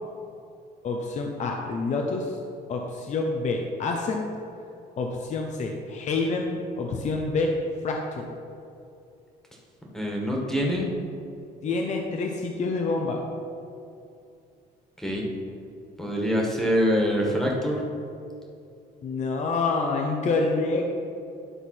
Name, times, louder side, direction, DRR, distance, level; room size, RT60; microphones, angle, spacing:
voice 1, 0.8-2.4 2.7-4.3 5.0-7.5 7.8-8.3 11.6-13.2 19.0-21.0, left 3 dB, 45° left, 1 dB, 0.8 m, -27 dB
voice 2, 9.9-10.9 15.0-15.3 16.0-17.8, equal, 5° left, -2 dB, 1.8 m, -25 dB
11.0 x 3.9 x 6.0 m, 2.6 s
cardioid pair, 110°, 17 cm